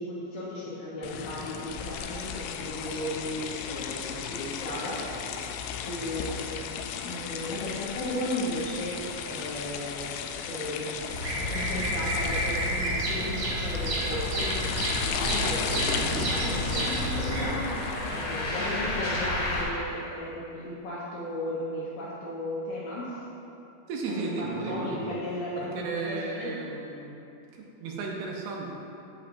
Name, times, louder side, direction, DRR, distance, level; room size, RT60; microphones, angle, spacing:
voice 1, 0.0-5.0 5.8-11.1 11.5-23.2 24.1-25.8 26.1-26.5, left 1 dB, 70° left, -7 dB, 2.6 m, -35 dB
sound 1, 1.0-18.7, left 7 dB, 85° left, 2.7 m, -36 dB
Bird vocalization bird call bird song, 11.1-17.5, right 1 dB, 50° right, 2.6 m, -30 dB
sound 2, 11.9-19.6, left 1 dB, 55° left, 2.6 m, -34 dB
voice 2, 16.0-16.3 23.9-25.2 25.6-27.2 27.5-28.7, right 3 dB, 80° right, -1 dB, 3.2 m, -34 dB
11.0 x 8.5 x 2.7 m, 2.8 s
omnidirectional pair, 5.8 m